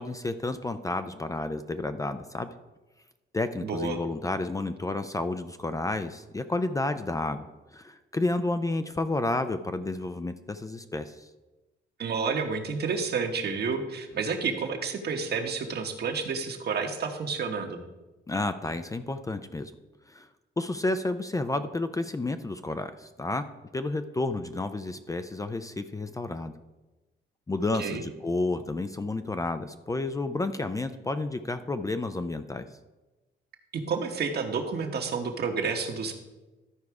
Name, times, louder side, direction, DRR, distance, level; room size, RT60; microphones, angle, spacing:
voice 1, 0.0-2.5 3.3-11.3 18.3-19.7 20.1-20.3 20.6-23.5 23.7-26.5 27.5-32.7, left 2 dB, 15° left, 10 dB, 0.4 m, -31 dB
voice 2, 3.6-4.0 12.0-17.8 27.8-28.0 33.7-36.1, right 5 dB, 55° right, 5 dB, 1.3 m, -30 dB
13.0 x 4.7 x 4.7 m, 1.1 s
cardioid pair, 90°, 20 cm